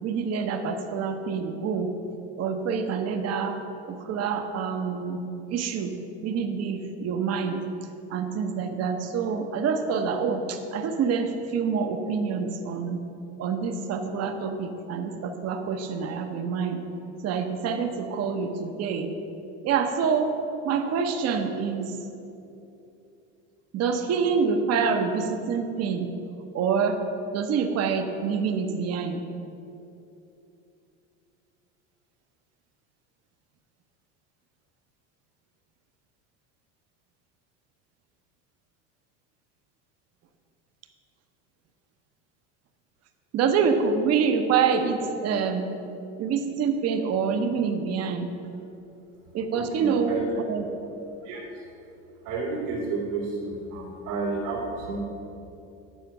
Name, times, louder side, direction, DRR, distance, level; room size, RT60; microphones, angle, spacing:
voice 1, 0.0-1.9 2.4-3.6 3.9-5.2 5.5-5.9 6.2-7.6 8.1-13.0 13.4-16.8 17.2-19.1 19.6-20.3 20.6-21.9 23.7-26.1 26.5-27.0 27.3-29.2 43.3-45.7 46.2-48.3 49.3-50.2 50.5-50.6, right 6 dB, 45° right, 6 dB, 1.0 m, -26 dB
voice 2, 49.5-50.4 51.2-51.4 52.2-55.1, right 3 dB, 85° right, -4 dB, 2.3 m, -31 dB
9.3 x 4.4 x 7.4 m, 2.8 s
supercardioid pair, 105°, 35 cm